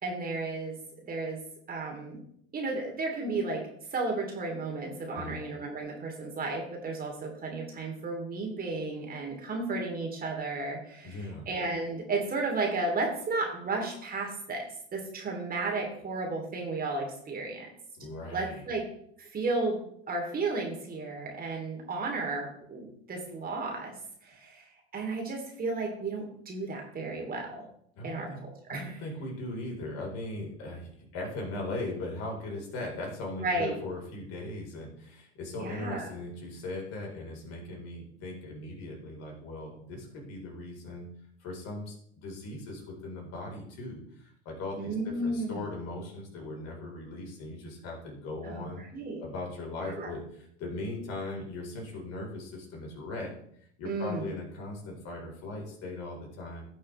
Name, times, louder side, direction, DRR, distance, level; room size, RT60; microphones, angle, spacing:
voice 1, 0.0-0.8 1.1-1.4 1.7-2.2 2.5-3.6 3.9-14.7 14.9-17.7 18.3-18.8 19.2-23.9 24.2-27.6 28.0-28.3 28.7-29.0 33.4-33.8 35.6-36.1 44.8-45.6 48.4-49.2 49.9-50.1 53.8-54.3, right 3 dB, 25° right, 0 dB, 3.0 m, -33 dB
voice 2, 11.0-11.5 18.0-18.6 28.0-28.4 28.7-41.1 41.4-48.8 49.2-53.3 53.6-56.7, left 2 dB, 50° left, 0 dB, 4.1 m, -39 dB
17.0 x 6.4 x 3.3 m, 0.68 s
hypercardioid pair, 85°, 33 cm